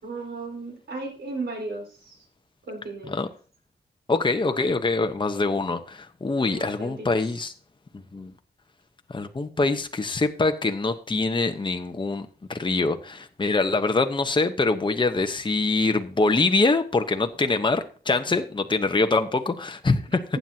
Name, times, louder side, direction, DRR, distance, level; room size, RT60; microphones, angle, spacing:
voice 1, 0.0-2.2 2.7-3.1 6.5-7.1, right 3 dB, 75° right, 4.6 m, -35 dB
voice 2, 4.1-7.5 8.1-8.3 9.1-20.2, left 3 dB, 30° left, 1.1 m, -24 dB
15.0 x 9.3 x 2.9 m
cardioid pair, 80°, 17 cm